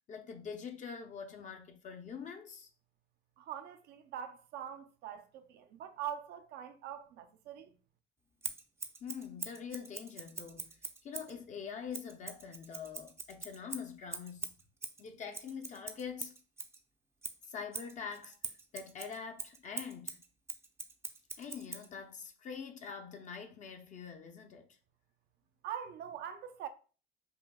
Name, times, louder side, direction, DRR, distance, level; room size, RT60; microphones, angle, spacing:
voice 1, 0.0-2.7 9.0-14.6 15.0-16.3 17.4-20.2 21.4-24.8, left 6 dB, 45° left, 0.6 m, -45 dB
voice 2, 3.4-7.7 25.6-26.7, right 9 dB, 75° right, 0.5 m, -43 dB
Scissors, 8.4-11.4 11.9-16.8 17.2-21.9, right 3 dB, 15° right, 0.4 m, -44 dB
5.5 x 2.1 x 2.2 m
cardioid pair, 110°, 17 cm